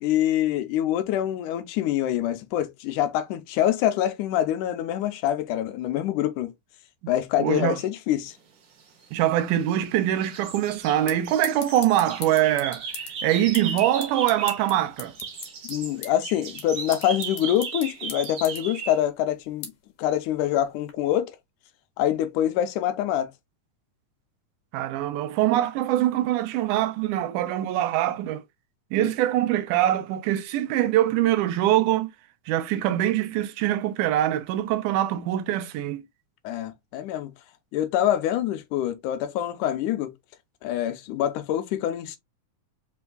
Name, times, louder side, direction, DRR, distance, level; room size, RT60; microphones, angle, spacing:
voice 1, 0.0-6.5 7.1-8.3 15.7-19.7 20.0-21.3 22.0-23.3 29.0-29.1 36.4-37.3 37.7-40.1 40.6-42.2, left 11 dB, 85° left, 2.1 m, -25 dB
voice 2, 7.4-7.8 9.1-12.9 13.2-15.1 24.7-28.4 28.9-32.1 32.5-36.0, right 13 dB, 85° right, 2.1 m, -23 dB
sound 1, 9.1-9.9 10.2-14.7 15.0-19.0, right 5 dB, 60° right, 1.3 m, -36 dB
sound 2, 10.4-20.9, left 7 dB, 65° left, 2.1 m, -43 dB
5.2 x 3.4 x 2.2 m
omnidirectional pair, 3.6 m